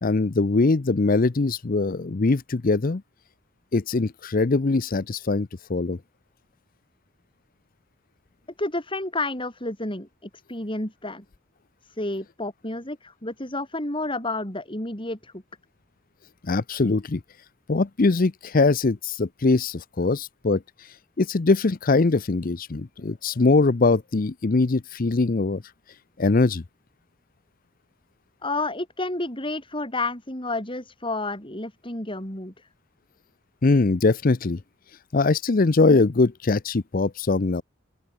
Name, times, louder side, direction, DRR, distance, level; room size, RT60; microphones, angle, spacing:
voice 1, 0.0-3.0 3.7-6.0 16.4-17.2 17.7-20.6 21.2-25.6 26.2-26.6 33.6-34.6 35.1-37.6, left 3 dB, 40° left, 0.6 m, -22 dB
voice 2, 8.6-11.2 11.8-15.4 28.4-32.7, left 2 dB, 25° left, 4.9 m, -30 dB
open air
head